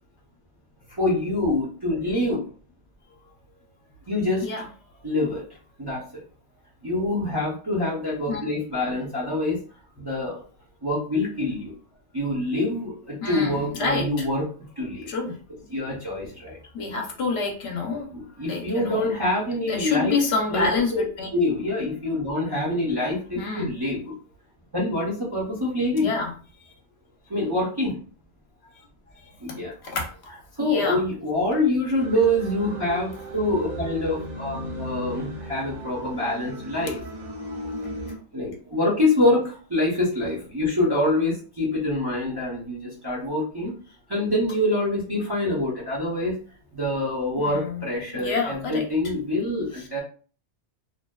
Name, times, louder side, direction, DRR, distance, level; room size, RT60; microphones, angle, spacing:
voice 1, 0.9-2.4 4.1-4.5 5.0-5.4 5.8-6.2 6.8-9.6 10.0-10.4 10.8-11.7 12.1-14.5 14.8-15.1 15.7-16.6 18.1-20.2 20.5-21.0 21.3-24.1 24.7-26.1 27.3-28.0 29.4-29.7 30.6-37.0 38.3-43.7 44.1-46.4 46.7-50.0, left 1 dB, 30° right, -6 dB, 0.5 m, -25 dB
voice 2, 13.2-14.1 15.1-15.4 16.7-18.1 18.5-19.1 19.6-21.3 23.4-23.7 25.9-26.3 26.6-26.7 29.5-30.1 30.6-31.0 47.4-47.8 48.1-48.9, left 4 dB, 70° left, 1 dB, 0.8 m, -27 dB
sound 1, 31.9-38.2, right 1 dB, 90° right, 1.0 m, -36 dB
2.5 x 2.2 x 2.2 m, 0.41 s
omnidirectional pair, 1.2 m